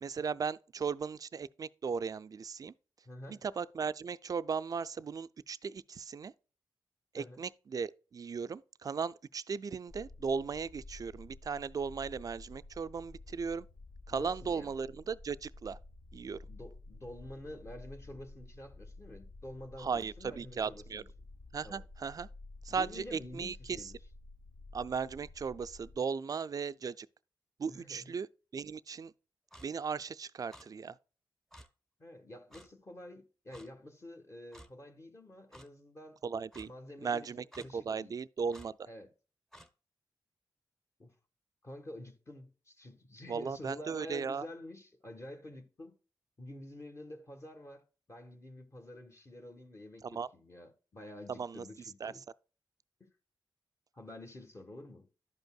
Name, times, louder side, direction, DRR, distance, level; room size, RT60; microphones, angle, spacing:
voice 1, 0.0-2.7 3.3-6.3 7.1-13.7 14.1-15.8 16.1-16.4 19.8-21.0 21.5-22.3 22.6-23.9 24.7-27.1 27.6-28.3 28.5-29.1 29.6-31.0 36.2-36.7 37.0-37.4 37.7-38.8 43.3-44.5 50.0-50.3 51.3-51.6 52.0-52.1, right 5 dB, 45° right, 0.3 m, -37 dB
voice 2, 3.0-3.4 7.1-7.4 14.1-14.7 16.5-21.1 21.6-21.8 22.7-23.9 27.7-28.1 32.0-36.2 36.6-37.3 37.6-38.1 38.9-39.1 41.0-41.1 41.6-45.9 46.4-47.8 48.1-52.2 53.0-53.1 53.9-55.1, left 1 dB, 35° left, 1.3 m, -48 dB
sound 1, 9.9-26.0, left 2 dB, 60° left, 1.1 m, -52 dB
Clock, 29.5-29.7 30.5-30.7 31.5-31.7 32.5-32.7 33.5-33.7 34.5-34.7 35.5-35.7 36.5-36.7 37.5-37.7 38.5-38.7 39.5-39.7, equal, 5° left, 0.8 m, -53 dB
12.0 x 5.3 x 2.3 m
cardioid pair, 70°, 8 cm